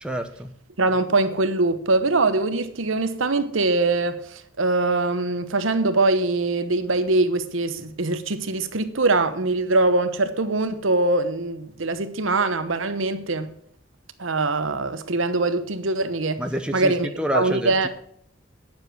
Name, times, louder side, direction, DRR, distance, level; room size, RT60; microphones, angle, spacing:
voice 1, 0.0-0.5 16.4-17.9, equal, 5° right, 0.8 m, -28 dB
voice 2, 0.8-13.5 14.2-16.4 16.7-17.1 17.3-17.9, right 2 dB, 75° right, 1.0 m, -22 dB
9.7 x 7.4 x 7.9 m
head